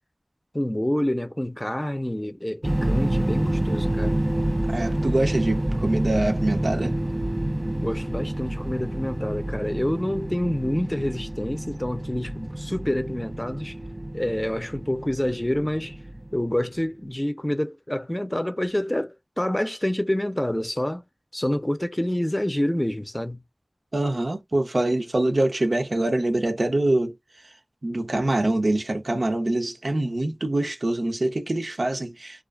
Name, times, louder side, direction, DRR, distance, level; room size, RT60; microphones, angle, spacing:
voice 1, 0.5-4.2 7.8-13.8 14.1-16.0 16.3-21.0 21.3-23.4, left 1 dB, 20° left, 0.5 m, -27 dB
sound 1, 2.6-16.6, right 1 dB, 35° right, 0.3 m, -28 dB
voice 2, 4.7-6.9 23.9-27.2 27.8-32.4, right 2 dB, 90° right, 0.6 m, -24 dB
2.4 x 2.4 x 2.3 m
wide cardioid pair, 40°, 0 cm